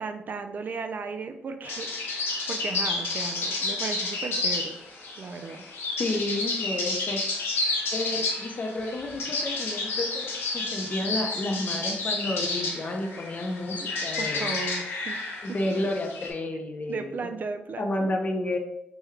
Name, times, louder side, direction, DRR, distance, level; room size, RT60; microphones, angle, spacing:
voice 1, 0.0-4.8 5.2-5.6 13.8-13.9 14.2-15.2 16.9-18.2, right 4 dB, 50° right, 8 dB, 0.3 m, -36 dB
sound 1, 1.6-16.3, left 3 dB, 80° left, 0.9 m, -30 dB
voice 2, 6.0-7.2 7.9-14.6 15.4-17.1 17.8-18.6, left 1 dB, 40° left, 3 dB, 0.6 m, -31 dB
3.5 x 2.2 x 3.1 m, 0.82 s
cardioid pair, 80°, 4 cm